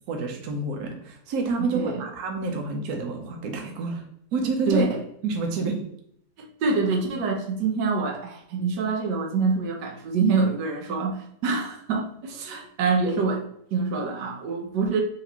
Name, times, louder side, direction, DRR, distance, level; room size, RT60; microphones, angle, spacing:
voice 1, 0.1-4.0 4.3-4.9 5.2-5.8, right 3 dB, 70° right, 2 dB, 1.2 m, -28 dB
voice 2, 1.6-2.0 4.7-5.0 6.4-13.4 13.7-15.0, right 4 dB, 90° right, 2 dB, 1.3 m, -26 dB
4.2 x 2.9 x 2.8 m, 0.71 s
omnidirectional pair, 1.8 m